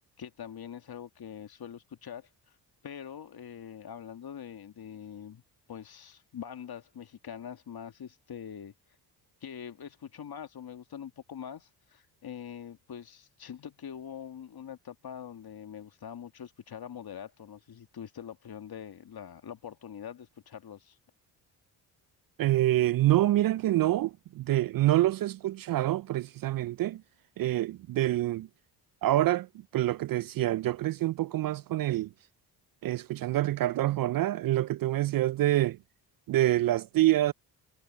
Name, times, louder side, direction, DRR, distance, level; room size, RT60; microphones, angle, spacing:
voice 1, 0.2-2.3 2.8-5.4 5.7-8.7 9.4-21.0, left 8 dB, 50° left, 2.0 m, -44 dB
voice 2, 22.4-27.0 27.4-28.5 29.0-29.5 29.7-32.1 32.8-35.8 36.3-37.3, right 15 dB, 45° right, 0.5 m, -26 dB
hypercardioid pair, 50°, 49 cm